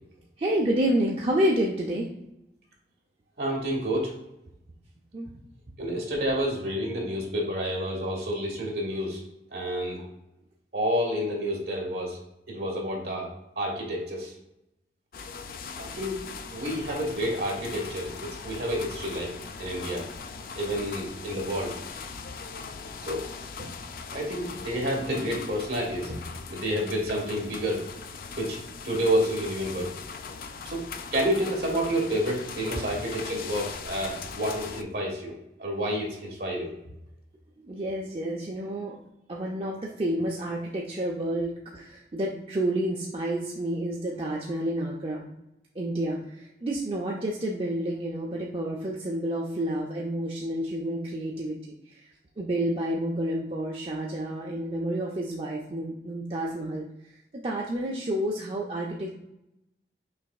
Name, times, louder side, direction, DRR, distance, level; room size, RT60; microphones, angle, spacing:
voice 1, 0.4-2.1 5.1-5.3 37.6-39.0 39.3-45.3 45.8-51.6 52.4-56.8 57.4-59.1, right 1 dB, 35° right, -3 dB, 0.4 m, -29 dB
voice 2, 3.4-4.1 5.8-9.2 9.5-10.0 10.7-12.2 12.5-13.3 13.5-14.3 15.7-16.2 16.5-20.0 20.6-21.8 23.0-23.3 23.6-23.7 24.1-26.2 26.5-27.8 28.3-28.6 28.8-29.9 30.6-30.8 31.1-35.3 35.6-36.7, equal, 60° right, -2 dB, 1.3 m, -29 dB
sound 1, 15.1-34.8, left 5 dB, 50° left, 0.3 m, -40 dB
5.7 x 3.3 x 2.3 m, 0.86 s
head